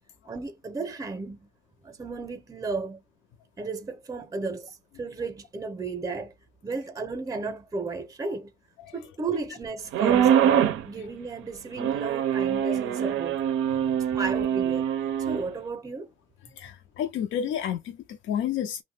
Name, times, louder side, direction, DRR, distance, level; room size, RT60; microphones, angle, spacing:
voice 1, 0.2-1.5 1.8-3.0 3.6-6.3 6.6-8.5 8.9-13.4 14.1-14.9 15.3-16.1, right 3 dB, 15° right, 0.6 m, -34 dB
sound 1, 9.9-10.9 11.8-15.4, right 9 dB, 90° right, 0.5 m, -24 dB
voice 2, 16.6-18.8, left 9 dB, 75° left, 0.4 m, -31 dB
2.6 x 2.1 x 3.1 m
cardioid pair, 90°, 20 cm